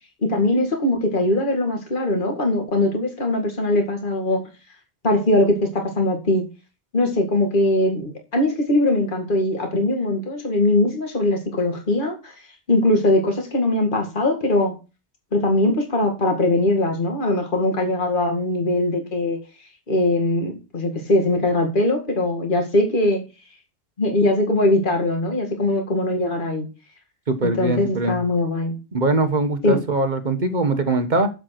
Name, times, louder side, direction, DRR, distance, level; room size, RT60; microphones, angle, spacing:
voice 1, 0.2-4.4 5.0-6.5 6.9-12.3 12.7-14.7 15.3-19.4 19.9-23.2 24.0-26.7 27.4-28.8 29.6-29.8, left 1 dB, 45° left, 3 dB, 2.3 m, -21 dB
voice 2, 27.3-28.2 28.9-31.3, right 2 dB, 45° right, 8 dB, 1.3 m, -22 dB
7.9 x 7.6 x 5.9 m, 0.30 s
omnidirectional pair, 1.2 m